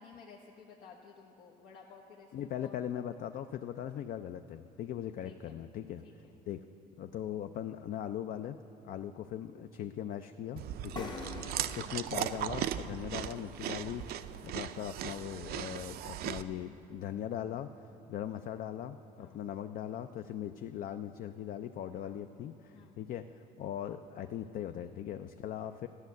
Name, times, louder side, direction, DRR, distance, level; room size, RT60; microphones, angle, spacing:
voice 1, 0.0-2.8 5.2-5.6 6.0-6.3 11.6-11.8 18.2-18.5 19.2-19.4 22.0-22.2 22.7-23.0, left 5 dB, 85° left, -4 dB, 1.2 m, -55 dB
voice 2, 2.3-6.0 6.5-6.6 7.0-8.6 8.8-11.3 11.8-14.0 14.4-17.7 18.1-25.9, left 10 dB, 55° left, 9 dB, 0.4 m, -40 dB
Chewing mastication, 10.6-16.4, right 11 dB, 65° right, 0.5 m, -38 dB
sound 1, 11.0-14.6, left 3 dB, 25° left, 0.8 m, -47 dB
13.0 x 6.5 x 9.3 m, 2.8 s
cardioid pair, 110°, 17 cm